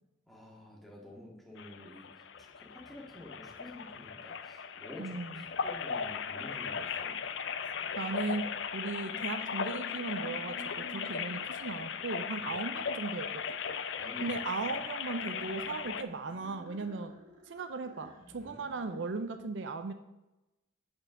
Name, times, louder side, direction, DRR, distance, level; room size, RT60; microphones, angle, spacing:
voice 1, 0.3-2.1 2.4-7.2 12.4-12.5 14.0-14.3 18.4-18.5, left 1 dB, ahead, -4 dB, 2.0 m, -49 dB
sound 1, 1.6-16.0, left 6 dB, 65° left, 0.5 m, -37 dB
sound 2, 2.3-4.3 5.3-12.2 15.2-19.0, equal, 90° right, 1.9 m, -54 dB
voice 2, 5.0-5.5 8.0-8.5 8.7-13.6 14.2-17.1 17.5-19.9, right 3 dB, 70° right, 9 dB, 0.5 m, -37 dB
8.5 x 4.5 x 6.4 m, 0.98 s
head